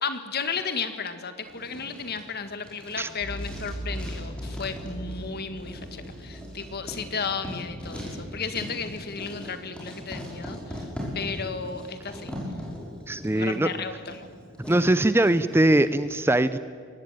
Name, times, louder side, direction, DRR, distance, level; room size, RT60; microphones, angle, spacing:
voice 1, 0.0-10.9 11.1-12.3 13.3-14.3, left 5 dB, 50° left, 9 dB, 1.7 m, -34 dB
Writing, 1.4-15.8, equal, 5° left, 6.0 m, -40 dB
sound 1, 3.2-7.3 7.6-7.7, equal, 80° left, 6.3 m, -38 dB
voice 2, 13.1-13.7 14.7-16.6, right 1 dB, 10° right, 13 dB, 0.5 m, -21 dB
23.0 x 18.5 x 9.0 m, 2.1 s
head